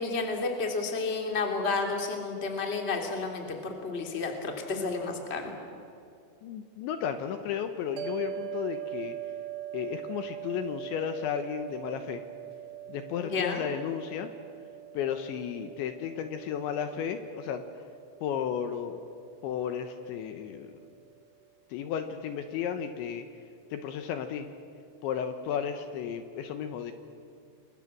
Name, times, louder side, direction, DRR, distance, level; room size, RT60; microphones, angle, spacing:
voice 1, 0.0-5.5 13.2-13.6, left 4 dB, 15° left, 3 dB, 2.2 m, -31 dB
voice 2, 6.4-9.2 9.7-12.2 12.9-14.3 14.9-17.6 18.2-19.0 19.4-20.8 21.7-23.3 23.7-24.5 25.0-26.9, left 8 dB, 75° left, 8 dB, 3.1 m, -33 dB
sound 1, 8.0-20.5, right 13 dB, 60° right, 2.3 m, -42 dB
29.5 x 23.5 x 7.5 m, 2.5 s
omnidirectional pair, 5.9 m